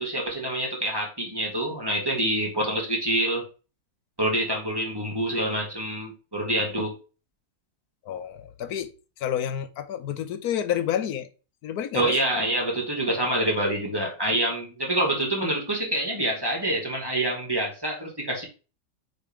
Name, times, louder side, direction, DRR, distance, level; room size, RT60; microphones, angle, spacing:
voice 1, 0.0-3.4 4.2-6.9 11.9-18.4, right 1 dB, 15° right, 2.3 m, -26 dB
voice 2, 8.0-8.9 9.2-11.3 11.6-12.2, left 10 dB, 85° left, 1.3 m, -29 dB
9.0 x 4.1 x 3.8 m
omnidirectional pair, 1.6 m